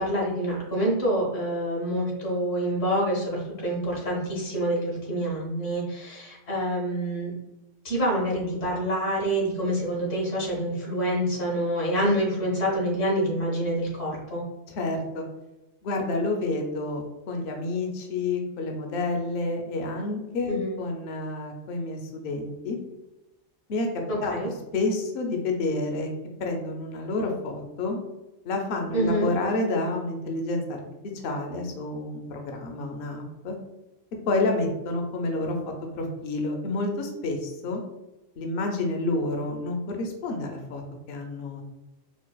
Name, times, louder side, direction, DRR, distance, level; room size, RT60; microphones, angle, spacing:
voice 1, 0.0-7.3 7.8-14.4 20.5-20.8 24.1-24.5 28.9-29.3, right 1 dB, 85° left, -4 dB, 1.6 m, -27 dB
voice 2, 14.8-15.2 15.8-22.8 23.7-23.9 24.2-24.3 24.7-26.1 26.4-28.0 28.4-30.8 31.2-33.5 34.3-35.6 35.9-37.8 38.4-41.6, left 2 dB, 60° left, 2 dB, 0.7 m, -29 dB
4.5 x 2.2 x 2.3 m, 0.99 s
omnidirectional pair, 1.3 m